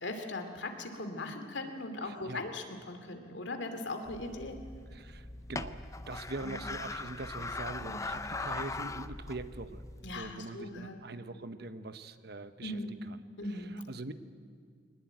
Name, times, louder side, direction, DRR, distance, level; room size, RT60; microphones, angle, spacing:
voice 1, 0.0-4.6 6.4-6.6 7.8-8.0 10.0-11.0 12.6-12.9 13.4-13.8, left 2 dB, 75° left, 6 dB, 2.7 m, -39 dB
voice 2, 2.0-2.5 4.9-5.8 6.1-9.8 10.1-13.2 13.5-14.1, right 2 dB, 55° right, 11 dB, 1.0 m, -43 dB
sound 1, 4.1-10.3, left 3 dB, 15° left, 0.6 m, -40 dB
23.0 x 19.5 x 9.0 m, 2.2 s
head